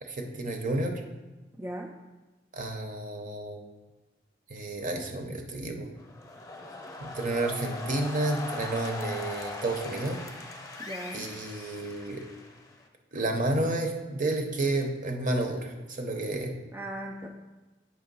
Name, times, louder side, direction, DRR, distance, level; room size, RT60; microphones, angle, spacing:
voice 1, 0.0-1.0 2.5-3.6 4.5-5.9 7.0-10.2 11.1-12.2 13.1-16.5, right 2 dB, 45° right, 4 dB, 0.8 m, -31 dB
voice 2, 1.6-2.0 10.8-11.3 16.7-17.3, right 1 dB, 15° right, 1 dB, 0.3 m, -38 dB
sound 1, 6.0-12.9, left 2 dB, 15° left, 0.8 m, -40 dB
8.4 x 3.3 x 5.4 m, 1.1 s
head